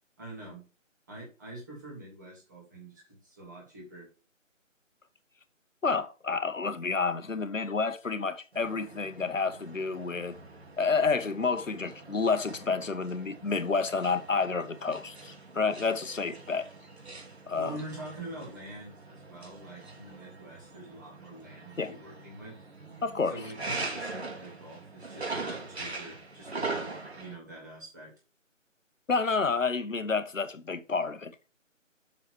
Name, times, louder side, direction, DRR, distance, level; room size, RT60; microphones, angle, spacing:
voice 1, 0.2-0.7 1.1-4.1 17.6-22.6 23.3-28.1, right 1 dB, 15° right, 2.5 m, -45 dB
voice 2, 5.8-10.4 10.8-16.7 17.5-17.8 21.8-21.9 23.0-23.4 29.1-31.5, left 4 dB, 70° left, 1.4 m, -29 dB
sound 1, 8.5-27.4, right 3 dB, 55° right, 2.4 m, -42 dB
7.1 x 5.3 x 6.2 m
figure-of-eight pair, 175°, 39 cm